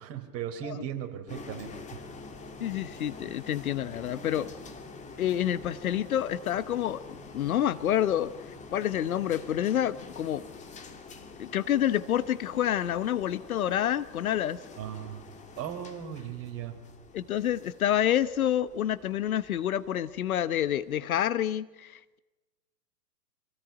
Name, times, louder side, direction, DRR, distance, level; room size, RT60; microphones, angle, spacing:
voice 1, 0.0-1.8 14.8-15.3 15.6-16.8, right 9 dB, 30° right, 5 dB, 3.9 m, -37 dB
sound 1, 1.3-21.0, left 4 dB, 15° left, 2.2 m, -47 dB
voice 2, 2.6-4.5 5.2-8.3 8.7-10.4 11.4-14.6 17.1-22.2, left 11 dB, 60° left, 15 dB, 1.1 m, -28 dB
26.0 x 18.5 x 9.3 m, 1.1 s
hypercardioid pair, 120°, 49 cm